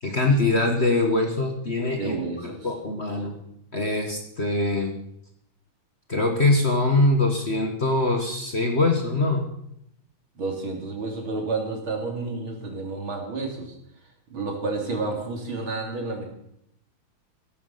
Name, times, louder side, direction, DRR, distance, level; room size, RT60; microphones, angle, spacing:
voice 1, 0.0-2.2 2.4-3.3 3.7-4.9 6.1-9.5, left 2 dB, 30° left, 3 dB, 1.7 m, -23 dB
voice 2, 2.0-2.6 10.4-13.7 14.3-16.2, right 3 dB, 65° right, 1 dB, 4.0 m, -30 dB
16.0 x 13.5 x 5.8 m, 0.76 s
omnidirectional pair, 2.4 m